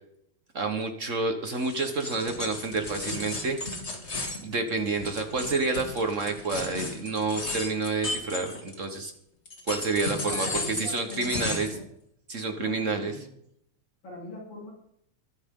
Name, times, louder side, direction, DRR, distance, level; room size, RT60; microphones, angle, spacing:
voice 1, 0.5-3.6 4.4-9.1 9.7-11.7 12.3-13.2, right 3 dB, 50° right, 5 dB, 0.9 m, -29 dB
sound 1, 1.5-9.0 9.5-11.8, left 2 dB, 25° left, 2.3 m, -35 dB
voice 2, 10.1-11.9 12.5-13.3 14.0-14.7, left 2 dB, 50° left, -5 dB, 4.7 m, -42 dB
22.5 x 11.0 x 3.8 m, 0.74 s
omnidirectional pair, 3.3 m